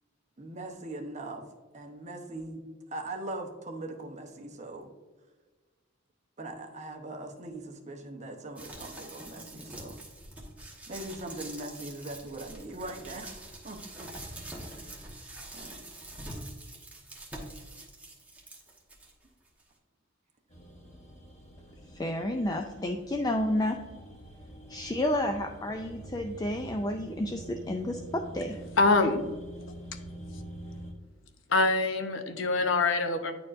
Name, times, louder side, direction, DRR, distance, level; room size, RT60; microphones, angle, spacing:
voice 1, 0.4-1.4 1.7-2.6 2.9-4.9 6.4-10.0 10.9-15.0 15.5-15.8, right 2 dB, 35° right, 3 dB, 0.9 m, -41 dB
sound 1, 8.6-19.1 19.6-19.7, right 1 dB, 10° right, 1.1 m, -45 dB
sound 2, 20.5-30.9, right 1 dB, 35° left, 1.0 m, -46 dB
voice 2, 22.0-23.8 24.7-28.6, left 1 dB, 20° left, 4 dB, 0.3 m, -30 dB
voice 3, 28.8-29.2 31.5-33.3, left 3 dB, 70° left, 6 dB, 0.7 m, -24 dB
9.7 x 4.4 x 2.5 m, 1.3 s
head